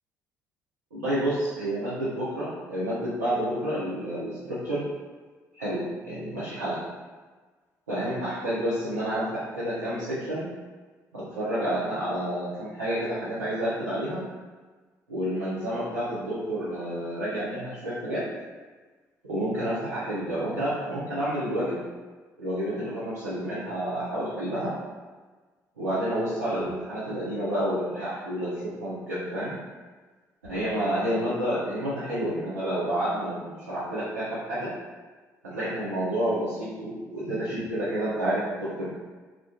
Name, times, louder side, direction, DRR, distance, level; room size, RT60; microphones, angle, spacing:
voice 1, 0.9-4.8 5.5-6.8 7.9-9.2 9.5-10.5 11.1-14.2 15.1-18.2 19.2-21.8 22.4-24.7 25.8-29.5 30.5-34.7 35.4-38.9, right 1 dB, 85° right, -11 dB, 0.5 m, -29 dB
2.3 x 2.1 x 2.6 m, 1.4 s
figure-of-eight pair, 45°, 9 cm